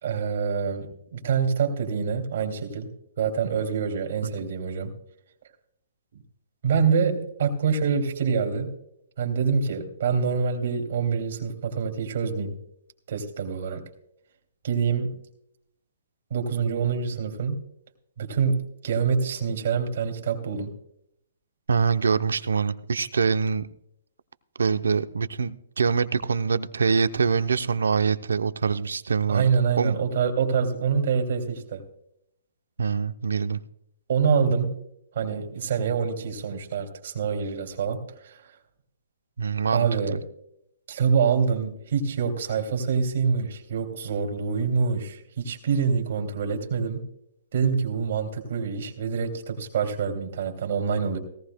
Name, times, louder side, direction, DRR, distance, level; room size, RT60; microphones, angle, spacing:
voice 1, 0.0-2.9 3.2-4.9 6.1-6.2 6.6-8.7 9.2-12.6 13.1-13.8 14.6-15.2 16.3-17.6 18.2-20.8 29.3-31.8 34.1-34.8 35.1-38.5 39.7-40.2 40.9-47.0 47.5-51.2, right 6 dB, 60° right, 4 dB, 2.5 m, -26 dB
voice 2, 21.7-23.7 24.6-29.5 29.8-30.0 32.8-33.6 39.4-40.2, right 5 dB, 90° right, 13 dB, 0.6 m, -24 dB
17.5 x 14.5 x 2.2 m, 0.74 s
hypercardioid pair, 145°, 0 cm